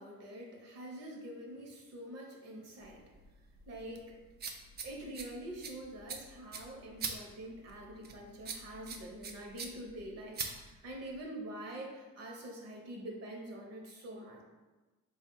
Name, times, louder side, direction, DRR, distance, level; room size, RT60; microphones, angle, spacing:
voice 1, 0.0-3.1 3.7-4.1 4.8-14.4, right 1 dB, 50° right, 0 dB, 0.8 m, -45 dB
sound 1, 2.8-11.2, right 5 dB, 30° right, 0.4 m, -45 dB
3.5 x 2.4 x 4.5 m, 1.2 s
cardioid pair, 140°, 33 cm